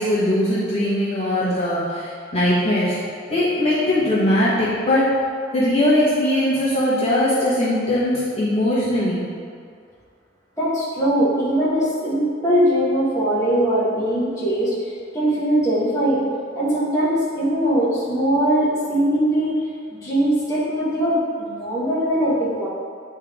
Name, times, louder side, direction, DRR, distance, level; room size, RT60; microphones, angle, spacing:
voice 1, 0.0-3.0 3.3-5.1 5.5-9.3, left 1 dB, 30° left, -11 dB, 1.5 m, -20 dB
voice 2, 10.6-14.7 15.1-16.2 16.5-19.6 19.9-22.7, right 1 dB, 15° left, -10 dB, 1.6 m, -21 dB
9.1 x 3.3 x 3.7 m, 2.2 s
head